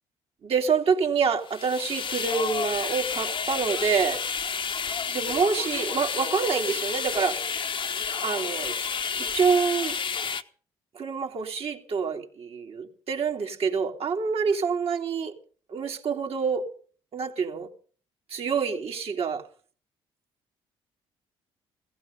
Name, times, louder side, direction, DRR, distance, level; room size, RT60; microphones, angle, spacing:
voice 1, 0.4-4.2 5.1-7.4 8.2-8.7 9.2-10.0 10.9-15.3 15.7-16.7 17.1-17.7 18.3-19.4, right 5 dB, 50° right, 2.9 m, -27 dB
sound 1, 1.5-10.4, left 6 dB, 45° left, 1.2 m, -30 dB
16.5 x 15.5 x 5.3 m
hypercardioid pair, 55°, 12 cm